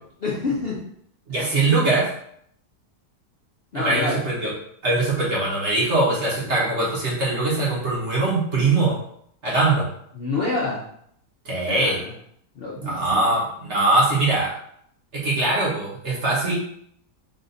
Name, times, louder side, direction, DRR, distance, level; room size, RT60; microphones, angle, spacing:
voice 1, 0.2-0.8 3.7-4.2 10.1-10.8 11.7-12.1 12.6-13.3, left 3 dB, 50° left, -5 dB, 0.7 m, -27 dB
voice 2, 1.3-2.1 3.7-4.5 4.8-9.0 9.4-9.9 11.4-12.0 12.8-14.5 15.1-16.5, right 2 dB, 50° right, -5 dB, 1.4 m, -22 dB
4.1 x 2.5 x 3.9 m, 0.69 s
omnidirectional pair, 1.7 m